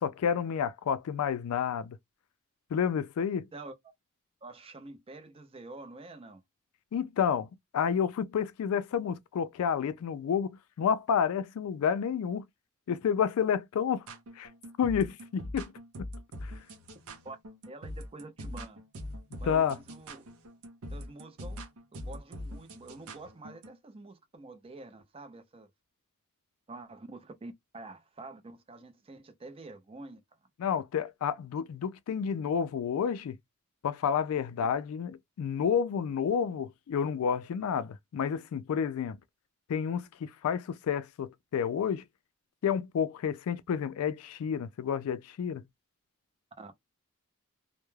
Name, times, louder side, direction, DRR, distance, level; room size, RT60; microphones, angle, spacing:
voice 1, 0.0-2.0 2.7-3.5 6.9-7.5 7.7-12.4 12.9-14.1 14.4-14.5 14.8-15.7 16.0-16.1 16.4-16.5 19.4-19.8 30.6-33.4 33.8-39.2 39.7-42.0 42.6-45.6, left 7 dB, 75° left, 0.3 m, -30 dB
voice 2, 4.4-6.4 17.2-17.4 17.7-18.8 19.4-20.3 20.9-21.6 21.9-25.7 26.7-30.2 46.6-46.7, right 2 dB, 25° right, 0.5 m, -47 dB
sound 1, 14.1-23.7, equal, 70° right, 0.6 m, -43 dB
2.3 x 2.1 x 3.1 m
head